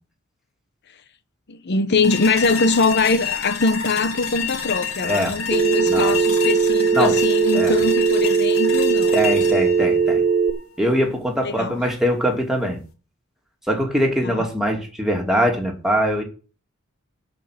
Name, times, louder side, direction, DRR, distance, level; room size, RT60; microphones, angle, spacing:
voice 1, 1.5-9.1 11.4-11.8 14.2-14.5, left 3 dB, 55° left, 0.9 m, -22 dB
sound 1, 2.0-11.1, left 7 dB, 80° left, 2.4 m, -29 dB
Telephone, 5.5-10.5, right 5 dB, 35° right, 1.9 m, -19 dB
voice 2, 9.1-10.2 10.8-12.8 13.7-16.2, equal, ahead, 2.7 m, -22 dB
11.5 x 5.3 x 8.7 m
head